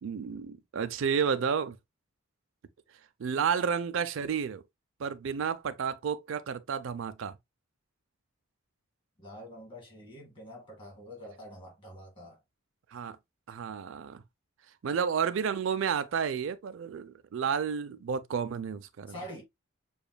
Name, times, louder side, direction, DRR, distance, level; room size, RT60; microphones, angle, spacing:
voice 1, 0.0-1.8 3.2-4.6 5.0-7.3 12.9-13.2 13.5-14.2 14.8-19.1, right 6 dB, 65° right, 0.4 m, -31 dB
voice 2, 9.2-12.4 19.1-19.4, equal, 25° left, 2.0 m, -46 dB
6.9 x 2.4 x 2.2 m
head